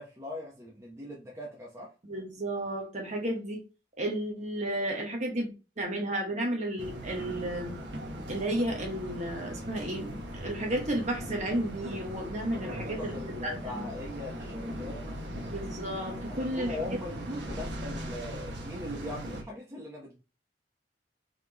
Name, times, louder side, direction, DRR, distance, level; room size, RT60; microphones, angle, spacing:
voice 1, 0.0-1.9 12.6-15.3 16.3-20.2, left 1 dB, 15° right, -3 dB, 1.0 m, -41 dB
voice 2, 2.0-3.6 4.0-7.8 8.3-13.1 13.4-13.8 15.5-16.7 17.3-17.4, right 1 dB, 40° right, 1 dB, 1.2 m, -33 dB
sound 1, 6.8-19.4, equal, 65° right, 1.1 m, -39 dB
4.2 x 3.5 x 2.9 m, 0.30 s
head